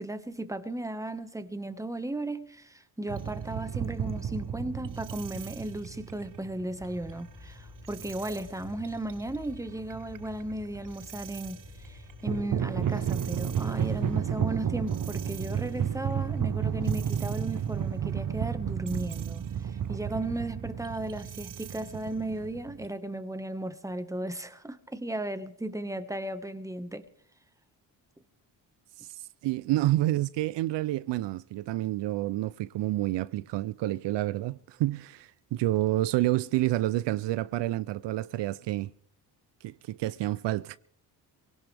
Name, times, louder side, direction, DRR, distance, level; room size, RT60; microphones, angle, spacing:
voice 1, 0.0-27.0, right 1 dB, 5° right, 1.4 m, -35 dB
sound 1, 3.1-7.4 7.8-8.4 8.8-9.2 9.7-11.6 12.1-22.9, right 8 dB, 50° right, 0.8 m, -32 dB
sound 2, 6.8-18.0, left 2 dB, 75° left, 5.9 m, -48 dB
voice 2, 29.4-38.9 39.6-40.8, right 16 dB, 75° right, 0.6 m, -29 dB
24.0 x 17.5 x 3.4 m
cardioid pair, 70°, 42 cm